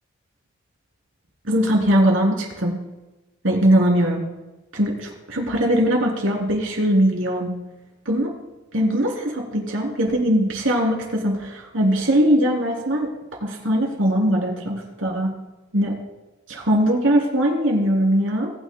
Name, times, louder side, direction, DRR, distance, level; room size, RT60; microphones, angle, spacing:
voice 1, 1.4-2.7 3.4-4.2 4.7-7.5 8.0-8.3 8.7-13.1 13.4-15.3 15.7-16.0 16.5-18.5, equal, 80° right, -1 dB, 3.4 m, -20 dB
20.5 x 9.5 x 2.3 m, 1.1 s
head